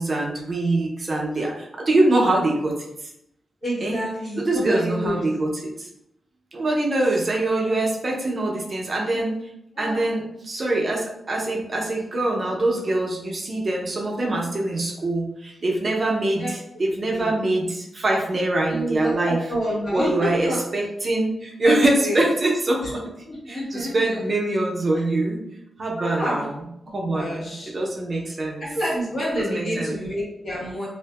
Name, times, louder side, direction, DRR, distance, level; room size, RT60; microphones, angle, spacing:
voice 1, 0.0-2.7 3.0-3.1 3.8-4.0 4.4-5.9 6.5-9.3 9.8-19.5 19.9-23.0 23.5-25.4 25.8-26.5 26.9-28.7 29.4-30.0, right 2 dB, 45° right, -1 dB, 0.5 m, -24 dB
voice 2, 3.6-5.2 7.6-7.8 9.1-9.2 9.7-10.0 16.3-16.5 17.0-17.4 18.7-20.6 21.6-21.7 22.0-22.2 23.3-24.2 24.9-25.0 26.0-26.5 27.0-27.7 28.6-30.9, equal, 60° left, -7 dB, 1.4 m, -28 dB
2.5 x 2.4 x 2.3 m, 0.81 s
cardioid pair, 85°, 0 cm